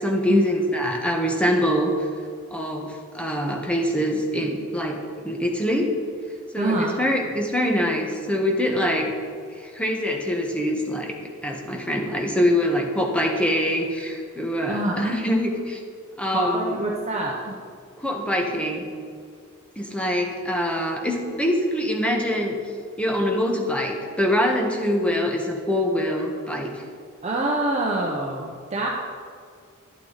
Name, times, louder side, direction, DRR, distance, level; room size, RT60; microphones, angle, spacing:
voice 1, 0.0-2.1 2.5-5.9 6.5-9.1 9.6-11.2 11.4-15.8 16.2-16.8 18.0-18.8 19.8-22.6 23.0-26.8, equal, 5° left, 1 dB, 1.4 m, -24 dB
voice 2, 6.6-7.0 14.7-15.2 16.3-17.6 27.2-28.9, right 1 dB, 35° right, -2 dB, 1.1 m, -25 dB
11.5 x 11.0 x 4.1 m, 2.2 s
head